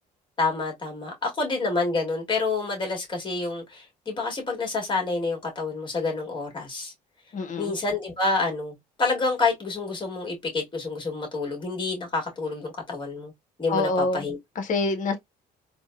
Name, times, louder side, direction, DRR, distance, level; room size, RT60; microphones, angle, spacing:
voice 1, 0.4-6.9 7.6-13.3 13.6-14.4, left 3 dB, 30° left, 1.8 m, -28 dB
voice 2, 7.3-7.7 13.7-14.3 14.6-15.2, left 3 dB, 50° left, 0.9 m, -26 dB
3.8 x 2.2 x 2.2 m
cardioid pair, 110°, 17 cm